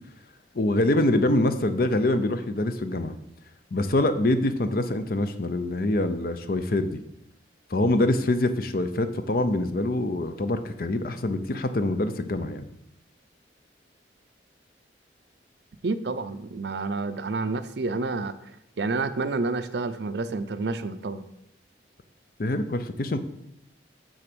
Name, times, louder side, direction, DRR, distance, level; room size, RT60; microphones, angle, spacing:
voice 1, 0.5-3.1 3.7-7.0 7.7-12.6 22.4-23.2, left 1 dB, 50° left, 10 dB, 0.6 m, -25 dB
voice 2, 15.8-18.4 18.8-21.2, right 3 dB, 70° right, 12 dB, 0.5 m, -29 dB
6.8 x 6.4 x 6.0 m, 0.79 s
head